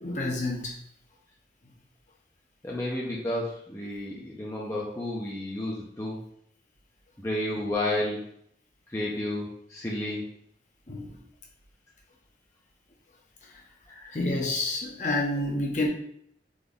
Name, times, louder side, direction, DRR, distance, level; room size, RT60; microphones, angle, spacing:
voice 1, 0.0-0.7 10.9-11.2 13.5-13.6 14.1-15.9, left 2 dB, 40° left, -1 dB, 0.8 m, -29 dB
voice 2, 2.6-6.2 7.2-8.2 8.9-10.2 13.9-14.1, left 1 dB, 15° left, -5 dB, 0.5 m, -31 dB
3.9 x 2.9 x 3.5 m, 0.69 s
head